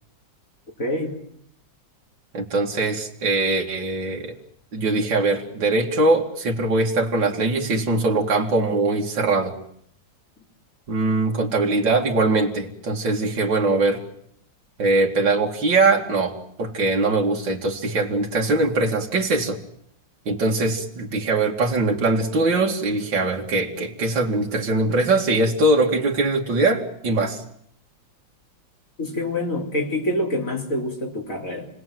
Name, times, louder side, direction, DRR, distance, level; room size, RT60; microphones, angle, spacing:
voice 1, 0.8-1.1 29.0-31.7, left 1 dB, 45° left, 0 dB, 4.4 m, -26 dB
voice 2, 2.3-4.3 4.7-9.6 10.9-14.0 14.8-19.6 20.3-27.4, right 2 dB, 75° right, 0 dB, 3.0 m, -22 dB
30.0 x 20.0 x 7.7 m, 0.68 s
omnidirectional pair, 2.0 m